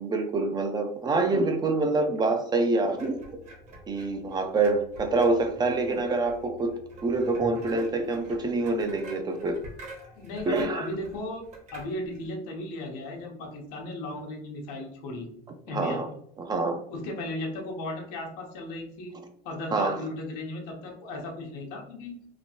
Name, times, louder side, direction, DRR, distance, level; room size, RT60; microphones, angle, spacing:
voice 1, 0.0-3.2 3.9-6.7 7.0-9.6 10.5-10.9 15.7-16.1 16.4-16.8 19.7-20.0, right 3 dB, 20° right, 6 dB, 0.3 m, -26 dB
sound 1, 2.9-12.3, right 1 dB, 40° right, 0.9 m, -47 dB
voice 2, 10.1-11.4 11.7-15.3 15.7-16.1 16.9-19.2 19.4-22.2, left 1 dB, 90° left, 1 dB, 0.9 m, -36 dB
3.0 x 2.5 x 2.7 m, 0.68 s
cardioid pair, 145°, 19 cm